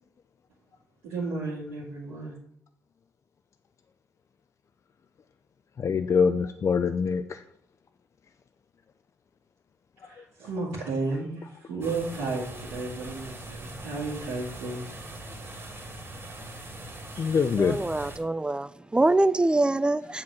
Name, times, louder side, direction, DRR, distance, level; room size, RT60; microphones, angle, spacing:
voice 1, 1.0-2.4 10.0-14.9 17.1-17.2, right 3 dB, 90° right, 2.1 m, -33 dB
voice 2, 5.8-7.4 10.0-10.1 17.2-17.8, left 6 dB, 50° left, 0.5 m, -24 dB
sound 1, 11.8-18.2, right 1 dB, 40° right, 2.4 m, -41 dB
voice 3, 17.6-20.2, right 2 dB, 15° right, 0.5 m, -24 dB
7.4 x 4.5 x 6.1 m
hypercardioid pair, 45°, 6 cm